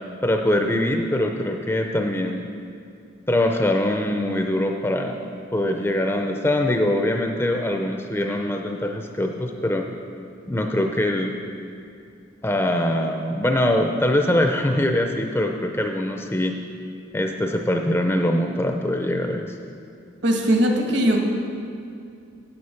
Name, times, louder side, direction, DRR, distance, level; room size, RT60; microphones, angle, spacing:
voice 1, 0.2-2.4 3.3-5.2 5.5-9.8 10.5-11.4 12.4-16.6 17.1-19.5, left 1 dB, 10° left, 3 dB, 0.5 m, -23 dB
voice 2, 20.2-21.2, right 1 dB, 60° right, 2 dB, 1.4 m, -19 dB
9.6 x 8.1 x 5.7 m, 2.4 s
head